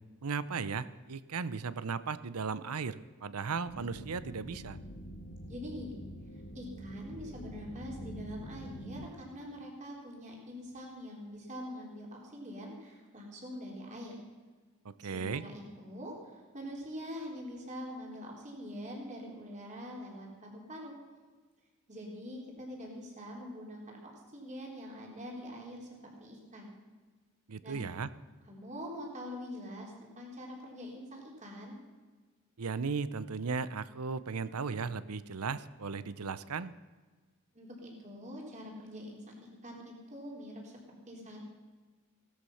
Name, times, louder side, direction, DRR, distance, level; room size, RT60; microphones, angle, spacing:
voice 1, 0.2-4.8 14.8-15.4 27.5-28.1 32.6-36.7, right 5 dB, 80° right, 16 dB, 0.7 m, -36 dB
sound 1, 3.6-9.1, equal, 55° left, 2.1 m, -46 dB
voice 2, 5.5-6.0 6.5-14.1 15.1-20.9 21.9-24.0 24.3-25.9 26.2-26.7 27.6-27.8 28.5-31.8 37.5-39.3 39.6-40.8 41.1-41.4, equal, 35° right, -1 dB, 3.9 m, -44 dB
17.0 x 13.0 x 5.7 m, 1.4 s
head